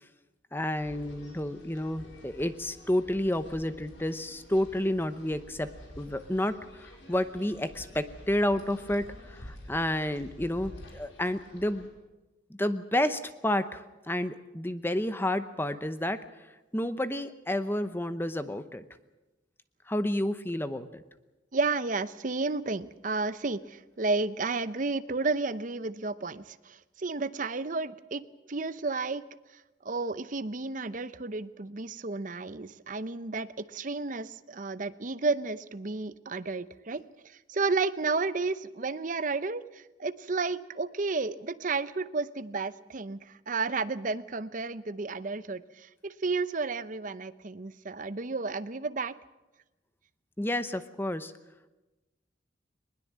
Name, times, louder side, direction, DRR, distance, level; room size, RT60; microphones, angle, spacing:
voice 1, 0.5-5.7 6.0-11.9 12.5-16.2 16.7-18.8 19.9-21.0 50.4-51.3, left 1 dB, 10° left, 11 dB, 0.8 m, -30 dB
sound 1, 0.8-11.9, equal, 85° left, 5.2 m, -49 dB
voice 2, 21.5-29.2 29.8-49.2, right 3 dB, 45° right, 14 dB, 0.7 m, -32 dB
21.0 x 20.5 x 7.5 m, 1.0 s
head